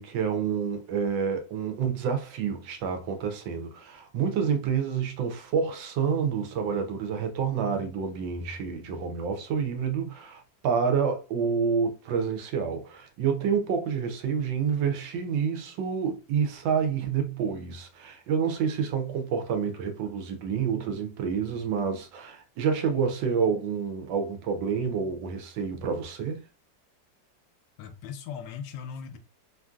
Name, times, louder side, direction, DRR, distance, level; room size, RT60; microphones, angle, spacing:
voice 1, 0.0-26.4, right 6 dB, 80° right, 1.4 m, -28 dB
voice 2, 27.8-29.2, left 7 dB, 85° left, 1.3 m, -38 dB
3.3 x 2.5 x 2.3 m
omnidirectional pair, 2.0 m